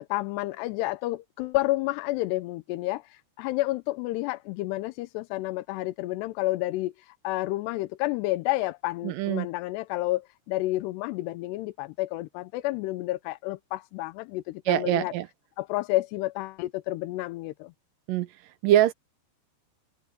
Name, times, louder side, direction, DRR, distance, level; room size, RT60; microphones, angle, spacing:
voice 1, 0.0-15.1 15.6-17.7, left 18 dB, 85° left, 2.8 m, -30 dB
voice 2, 9.0-9.5 14.7-15.3 18.1-18.9, right 13 dB, 75° right, 2.1 m, -24 dB
omnidirectional pair, 4.9 m